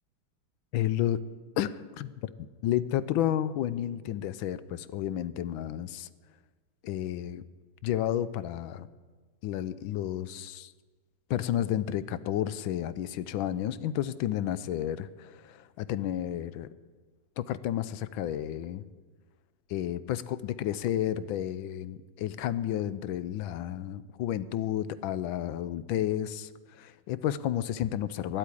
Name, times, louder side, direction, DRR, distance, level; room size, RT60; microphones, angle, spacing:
voice 1, 0.7-1.2 1.6-2.3 2.6-6.1 6.8-7.4 7.8-8.9 9.4-10.7 11.3-16.7 17.4-18.8 19.7-28.4, left 11 dB, 75° left, 16 dB, 1.3 m, -31 dB
10.5 x 8.3 x 9.7 m, 1.4 s
omnidirectional pair, 2.3 m